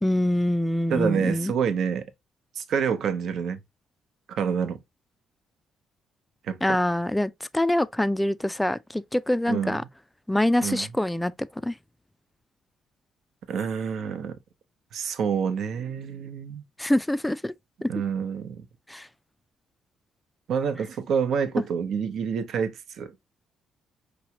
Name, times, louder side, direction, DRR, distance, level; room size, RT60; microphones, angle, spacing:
voice 1, 0.0-1.5 6.6-9.8 10.3-11.8 16.8-17.5 17.8-17.9 18.9-19.1, left 1 dB, 5° left, 0.3 m, -25 dB
voice 2, 0.9-2.1 2.6-3.6 4.3-4.8 6.4-6.8 9.5-9.8 10.6-10.9 13.5-14.4 14.9-16.6 17.9-18.7 20.5-23.1, right 7 dB, 70° right, 0.8 m, -27 dB
4.8 x 3.1 x 2.8 m
cardioid pair, 90°, 0 cm